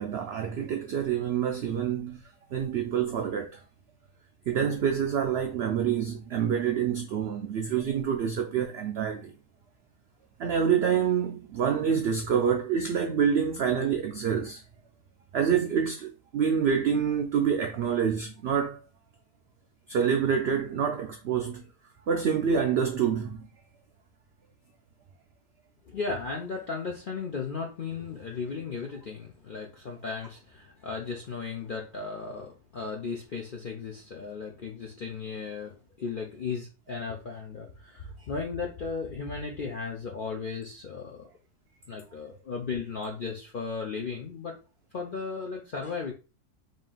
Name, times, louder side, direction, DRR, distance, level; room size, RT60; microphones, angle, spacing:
voice 1, 0.0-2.2 2.5-3.6 4.5-9.3 10.4-14.6 15.3-18.8 19.9-21.6 22.1-23.5, right 7 dB, 90° right, 0.5 m, -27 dB
voice 2, 25.8-41.3 41.9-44.6 44.9-46.1, left 5 dB, 70° left, 0.5 m, -36 dB
3.7 x 2.5 x 3.8 m
omnidirectional pair, 1.6 m